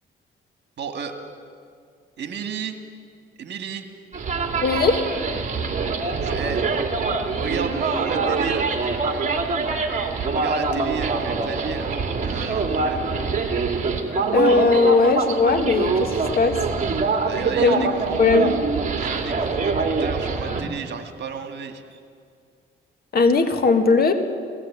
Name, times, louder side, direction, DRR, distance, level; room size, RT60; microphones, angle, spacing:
voice 1, 0.8-1.2 2.2-2.8 3.4-3.9 6.0-6.9 7.4-9.3 10.3-13.1 17.2-18.6 19.0-22.0, right 6 dB, 60° right, 6 dB, 2.0 m, -32 dB
sound 1, 4.1-20.6, right 4 dB, 40° right, 2.5 m, -24 dB
voice 2, 4.6-5.0 14.3-16.6 17.6-17.9 18.2-18.5 23.1-24.1, left 3 dB, 50° left, 6 dB, 2.0 m, -18 dB
18.0 x 16.5 x 8.9 m, 2.2 s
cardioid pair, 90°, 20 cm